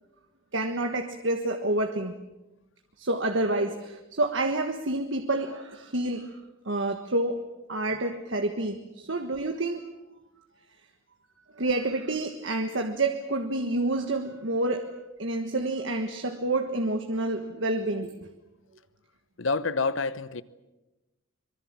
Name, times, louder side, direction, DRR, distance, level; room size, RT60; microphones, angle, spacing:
voice 1, 0.5-2.1 3.0-6.3 6.6-7.4 7.7-9.8 11.6-18.3, right 2 dB, 65° right, 1.5 m, -28 dB
voice 2, 19.4-20.4, left 4 dB, 65° left, 1.0 m, -27 dB
25.0 x 23.0 x 7.5 m
head